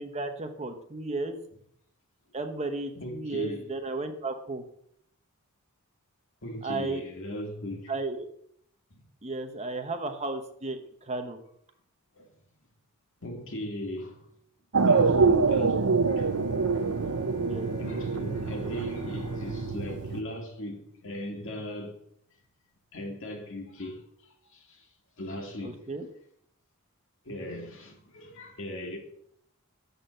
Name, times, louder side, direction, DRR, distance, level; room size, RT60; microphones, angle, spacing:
voice 1, 0.0-1.4 2.3-4.6 6.6-7.0 7.9-8.3 9.2-11.4 17.4-17.7 25.6-26.1, right 2 dB, 30° right, 1.0 m, -34 dB
voice 2, 3.0-3.6 6.4-7.9 8.9-9.0 12.2-12.3 13.2-14.3 14.8-16.3 17.8-22.0 22.9-24.9 25.2-25.8 27.2-29.0, left 1 dB, 60° left, 2.1 m, -38 dB
sound 1, 14.7-20.2, right 4 dB, 90° right, 0.7 m, -25 dB
Bowed string instrument, 16.0-21.7, left 1 dB, 80° left, 1.6 m, -45 dB
12.0 x 4.3 x 7.9 m
head